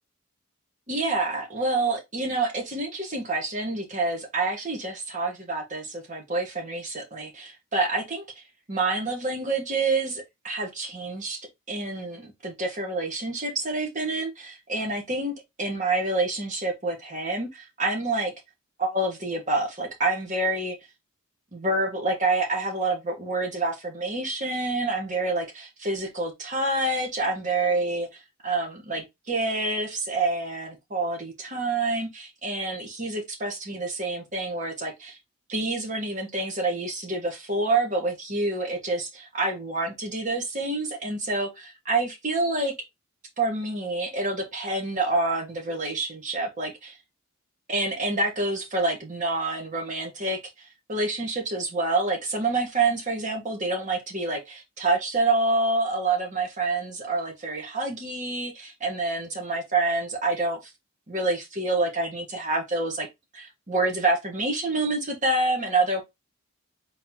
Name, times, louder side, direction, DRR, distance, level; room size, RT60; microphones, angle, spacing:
voice 1, 0.9-8.2 8.7-11.4 11.7-18.3 18.8-20.8 21.5-28.1 28.4-35.2 35.5-42.7 43.4-47.0 47.7-60.6 61.1-63.1 63.3-66.0, right 2 dB, 35° right, 1.3 m, -27 dB
3.9 x 2.9 x 3.7 m
head